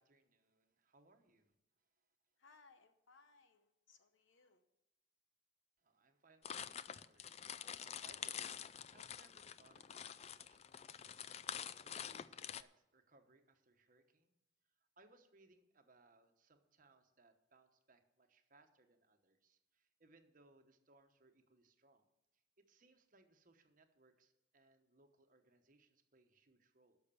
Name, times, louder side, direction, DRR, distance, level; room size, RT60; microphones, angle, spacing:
voice 1, 0.0-2.1 5.8-14.3 14.6-22.1 22.3-27.0, right 3 dB, 45° right, 6 dB, 1.1 m, -70 dB
voice 2, 2.4-4.6, left 4 dB, 75° left, 9 dB, 0.8 m, -67 dB
sound 1, 6.4-12.6, left 8 dB, 35° left, 0.3 m, -47 dB
12.0 x 6.6 x 6.9 m, 0.91 s
head